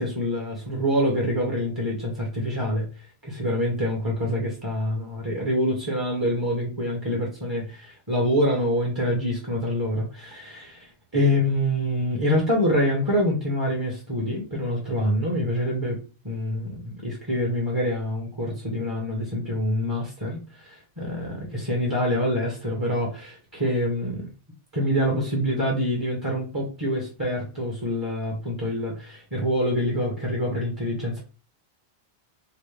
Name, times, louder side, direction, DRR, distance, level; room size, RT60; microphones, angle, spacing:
voice 1, 0.0-24.3 24.7-31.2, equal, 20° right, -1 dB, 0.9 m, -26 dB
4.8 x 2.0 x 3.2 m, 0.34 s
omnidirectional pair, 1.1 m